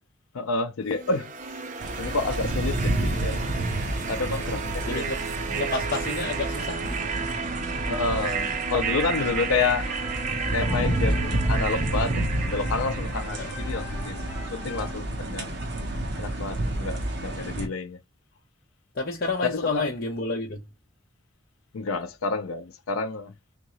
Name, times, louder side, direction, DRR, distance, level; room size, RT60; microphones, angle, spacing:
voice 1, 0.3-1.3 2.0-3.4 4.1-5.1 7.9-9.9 10.5-12.2 12.5-15.5 16.2-18.0 19.4-19.9 21.7-23.3, left 4 dB, 85° left, 0.5 m, -29 dB
sound 1, 0.9-13.8, right 6 dB, 35° right, 0.5 m, -33 dB
sound 2, 1.8-17.7, right 1 dB, 55° right, 1.1 m, -30 dB
voice 2, 4.8-5.2 5.5-6.8 7.3-7.4 13.4-13.5 18.9-20.6, left 3 dB, 45° left, 0.8 m, -29 dB
sound 3, 9.8-14.9, left 1 dB, 5° right, 1.9 m, -42 dB
3.7 x 3.6 x 3.1 m
head